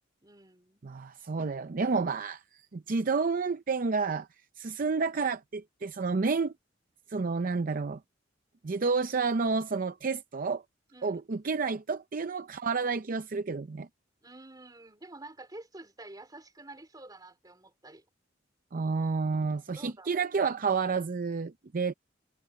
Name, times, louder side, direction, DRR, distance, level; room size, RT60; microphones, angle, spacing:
voice 1, 0.2-0.8 1.8-2.0 10.9-11.2 14.2-18.0 19.8-20.2, right 2 dB, 20° right, 3.5 m, -49 dB
voice 2, 0.8-4.3 4.6-6.5 7.1-8.0 8.6-10.6 11.0-13.9 18.7-21.9, right 4 dB, 45° right, 0.5 m, -30 dB
head